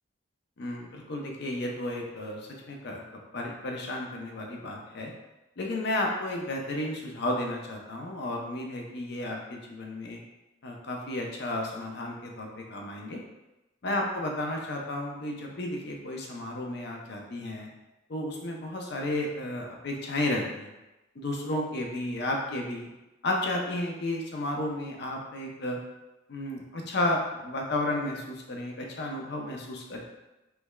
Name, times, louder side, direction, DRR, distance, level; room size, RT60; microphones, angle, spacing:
voice 1, 0.6-3.0 3.3-5.1 5.6-10.2 10.6-13.2 13.8-17.7 18.1-20.7 21.2-22.9 23.2-25.8 26.3-30.0, left 1 dB, 60° left, 1 dB, 0.5 m, -32 dB
3.4 x 3.0 x 2.2 m, 1.0 s
head